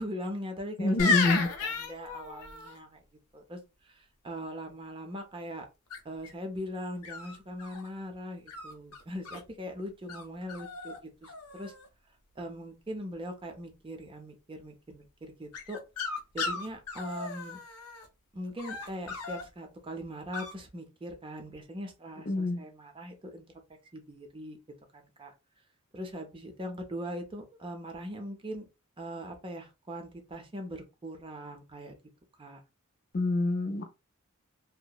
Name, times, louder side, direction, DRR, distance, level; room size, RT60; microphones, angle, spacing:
voice 1, 0.0-3.0 3.3-5.7 6.0-11.7 12.4-15.8 16.3-17.6 18.3-23.5 23.9-24.6 24.9-25.3 25.9-28.7 29.0-32.0 32.4-32.6, equal, 25° right, 0.5 m, -41 dB
voice 2, 0.8-1.5 22.3-22.6 33.1-33.9, left 2 dB, 45° left, 0.5 m, -26 dB
sound 1, 1.0-2.8 5.9-6.3 7.0-7.9 8.5-9.4 10.1-10.2 10.5-11.0 11.2-11.9 15.5-18.1 18.6-19.4 20.3-20.5, left 4 dB, 90° left, 0.7 m, -34 dB
2.8 x 2.1 x 2.2 m
head